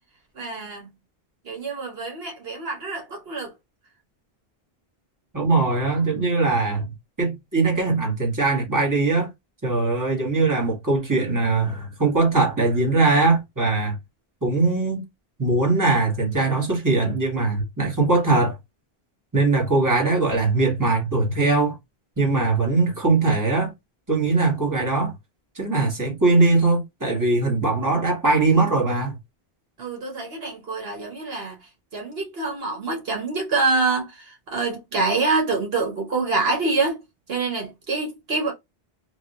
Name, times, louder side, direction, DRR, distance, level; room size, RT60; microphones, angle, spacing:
voice 1, 0.3-0.9 1.4-3.5 29.8-31.6 31.9-37.0 37.3-38.5, right 3 dB, 70° right, 1.4 m, -26 dB
voice 2, 5.3-6.9 7.2-9.3 9.6-14.0 14.4-15.0 15.4-18.5 19.3-21.8 22.2-23.7 24.1-25.1 25.5-29.2, right 3 dB, 20° right, 1.5 m, -21 dB
3.4 x 2.5 x 2.7 m
omnidirectional pair, 1.0 m